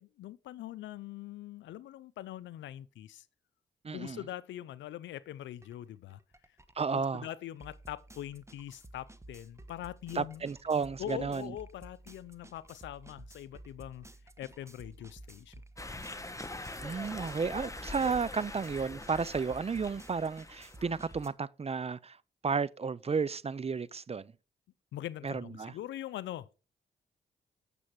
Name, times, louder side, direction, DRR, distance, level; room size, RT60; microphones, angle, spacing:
voice 1, 0.0-3.3 3.9-6.2 6.9-10.4 11.0-14.1 14.4-15.5 24.9-26.5, left 12 dB, 80° left, 0.6 m, -43 dB
voice 2, 3.8-4.2 6.8-7.3 10.1-11.5 16.8-22.2 22.4-24.3 25.2-25.7, right 5 dB, 35° right, 0.5 m, -33 dB
sound 1, 5.6-5.8 6.1-21.3, right 2 dB, 15° right, 1.1 m, -53 dB
sound 2, 15.8-21.2, left 2 dB, 15° left, 1.3 m, -43 dB
8.6 x 6.9 x 4.7 m
supercardioid pair, 45°, 19 cm